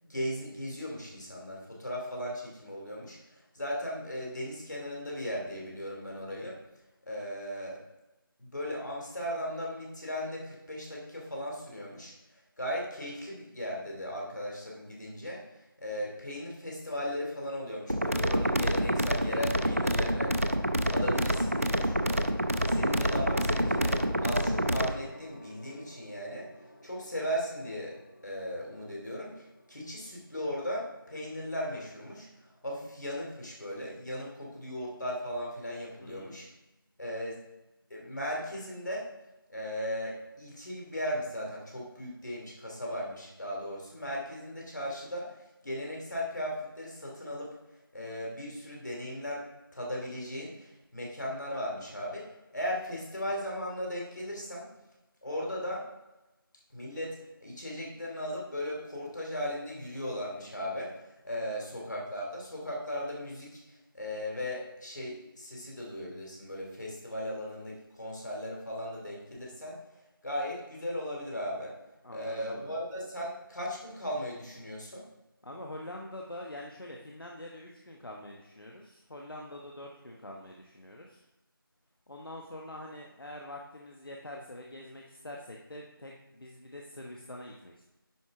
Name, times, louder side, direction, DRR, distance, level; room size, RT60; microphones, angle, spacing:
voice 1, 0.0-6.6 7.0-7.8 8.4-20.6 20.8-22.3 22.7-26.5 26.8-28.0 28.2-32.3 32.6-36.4 37.0-37.4 37.9-39.1 39.5-45.3 45.6-47.6 47.9-54.7 55.2-55.9 56.7-57.2 57.4-61.0 61.2-63.6 63.9-69.8 70.2-71.8 72.1-75.1, equal, 50° left, -3 dB, 2.5 m, -37 dB
sound 1, 17.9-24.9, equal, 35° right, 0.4 m, -27 dB
Gong, 22.8-32.5 33.5-33.8, equal, 35° left, 0.7 m, -49 dB
voice 2, 36.0-36.4 61.5-61.6 72.0-72.8 75.4-81.3 82.1-87.9, left 1 dB, 70° left, 0 dB, 1.1 m, -45 dB
10.0 x 4.4 x 3.7 m, 1.0 s
figure-of-eight pair, 180°, 12 cm